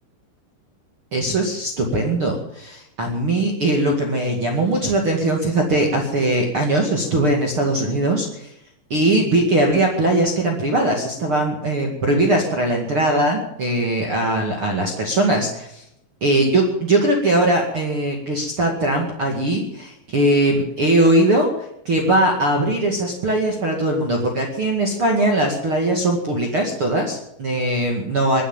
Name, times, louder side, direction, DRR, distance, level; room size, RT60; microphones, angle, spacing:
voice 1, 1.1-8.5 8.9-15.8 16.2-28.4, right 1 dB, 45° right, 1 dB, 1.7 m, -20 dB
22.0 x 8.6 x 7.3 m, 0.79 s
omnidirectional pair, 5.8 m